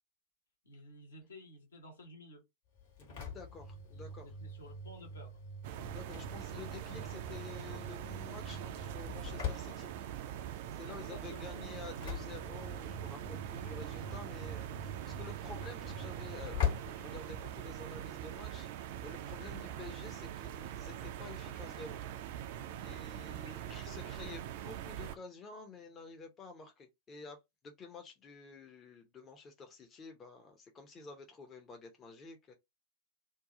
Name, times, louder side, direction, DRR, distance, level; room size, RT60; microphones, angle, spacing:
voice 1, 0.6-2.4 3.9-5.4 10.9-12.1 23.4-24.4, left 1 dB, 70° left, 1.2 m, -54 dB
Engine / Slam, 2.8-17.9, left 5 dB, 55° left, 1.3 m, -43 dB
voice 2, 3.0-4.3 5.9-9.9 10.7-22.0 22.8-27.4 27.6-32.5, left 4 dB, 25° left, 0.6 m, -50 dB
sound 1, 5.6-25.2, right 11 dB, 50° right, 0.3 m, -43 dB
2.7 x 2.3 x 3.7 m
figure-of-eight pair, 90°, 0 cm